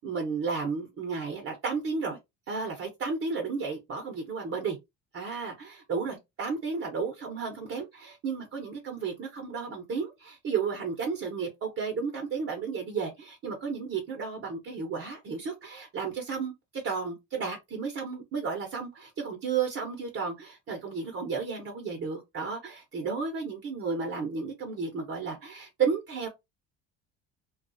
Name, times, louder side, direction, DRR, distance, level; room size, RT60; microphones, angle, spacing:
voice 1, 0.0-2.2 2.5-4.8 5.1-16.5 16.8-26.3, right 5 dB, 35° right, 0.8 m, -33 dB
2.3 x 2.3 x 2.6 m
supercardioid pair, 90°, 37 cm